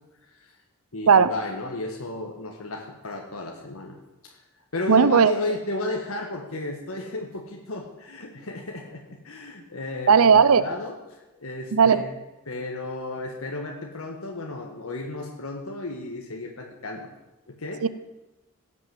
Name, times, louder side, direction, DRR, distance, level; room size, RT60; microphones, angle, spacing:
voice 1, 0.9-4.0 4.2-4.4 4.7-12.2 12.5-17.1 17.5-17.8, left 2 dB, 75° left, 1 dB, 1.4 m, -34 dB
voice 2, 4.9-5.3 10.1-10.6 11.7-12.0 17.8-17.9, right 6 dB, 80° right, 15 dB, 0.5 m, -16 dB
16.5 x 6.2 x 7.6 m, 1.0 s
head